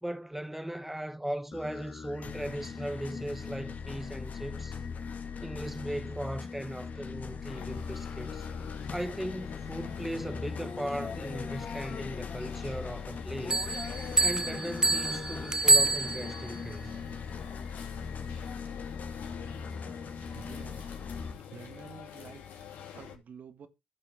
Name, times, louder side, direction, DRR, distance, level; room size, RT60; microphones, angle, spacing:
voice 1, 0.0-4.8 5.4-8.5 8.9-13.7 14.2-16.9, right 1 dB, 5° right, 1.2 m, -38 dB
sound 1, 1.5-21.3, left 5 dB, 55° left, 1.8 m, -40 dB
sound 2, 7.4-23.2, left 8 dB, 80° left, 2.9 m, -46 dB
sound 3, 13.5-16.5, right 2 dB, 25° right, 0.4 m, -26 dB
voice 2, 20.3-20.9 21.5-22.5 22.9-23.7, right 7 dB, 60° right, 1.7 m, -49 dB
14.0 x 6.9 x 3.6 m
hypercardioid pair, 45°, 3 cm